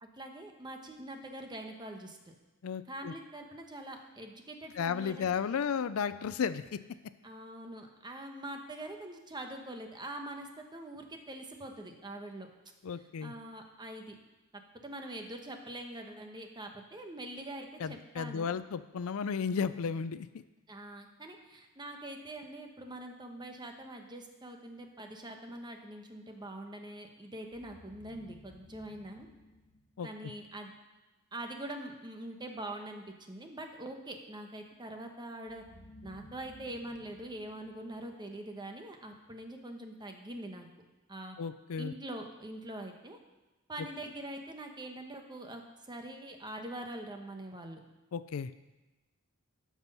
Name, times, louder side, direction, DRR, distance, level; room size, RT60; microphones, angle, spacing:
voice 1, 0.0-2.2 2.9-5.2 7.2-12.5 12.9-14.1 14.8-18.6 20.7-29.3 30.0-30.7 31.3-35.6 36.0-40.7 41.1-41.4 41.8-43.2 43.7-47.8, right 1 dB, 20° right, 4 dB, 1.1 m, -44 dB
voice 2, 2.6-3.1 4.8-6.8 12.8-13.3 17.8-20.3 30.0-30.1 41.4-41.9 48.1-48.5, left 6 dB, 70° left, 14 dB, 0.4 m, -34 dB
sound 1, 27.5-30.5 35.5-38.7, left 1 dB, 45° left, 1.5 m, -56 dB
12.5 x 6.1 x 5.5 m, 1.1 s
head